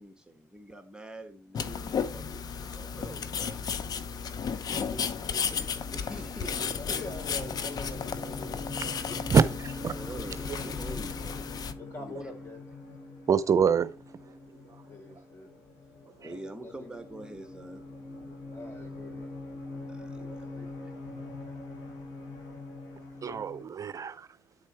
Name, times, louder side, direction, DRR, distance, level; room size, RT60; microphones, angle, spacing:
voice 1, 0.0-3.6 5.9-7.0 9.9-11.4 11.9-12.3 16.2-17.8 19.9-20.5 20.8-21.3, right 2 dB, 10° right, 1.3 m, -45 dB
sound 1, 1.5-11.7, left 6 dB, 55° left, 0.8 m, -34 dB
sound 2, 4.4-23.7, left 2 dB, 70° left, 2.6 m, -43 dB
voice 2, 4.6-5.8 6.8-9.2 10.3-10.4 11.8-12.6 14.9-15.5 16.2-17.3 18.5-19.3 20.5-20.9, left 2 dB, 35° left, 4.3 m, -45 dB
voice 3, 9.3-9.9 10.5-10.6 13.3-13.9 23.2-24.3, right 6 dB, 45° right, 0.5 m, -25 dB
9.4 x 4.4 x 4.6 m
supercardioid pair, 65°, 8 cm